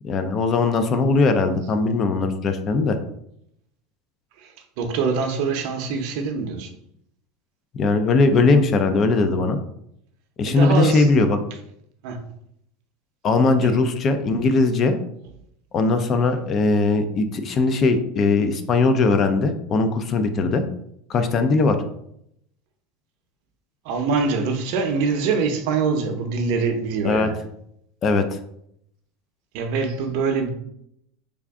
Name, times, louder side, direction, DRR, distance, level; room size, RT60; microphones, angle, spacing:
voice 1, 0.0-3.0 7.7-9.6 10.4-11.4 13.2-14.9 15.7-20.6 21.1-21.8 27.0-27.3 28.0-28.2, left 3 dB, 30° left, 7 dB, 0.3 m, -19 dB
voice 2, 4.4-6.7 10.5-11.1 12.0-12.2 13.6-13.8 23.8-27.4 29.5-30.5, right 5 dB, 55° right, 5 dB, 0.6 m, -24 dB
3.4 x 2.4 x 3.5 m, 0.73 s
supercardioid pair, 155°, 0 cm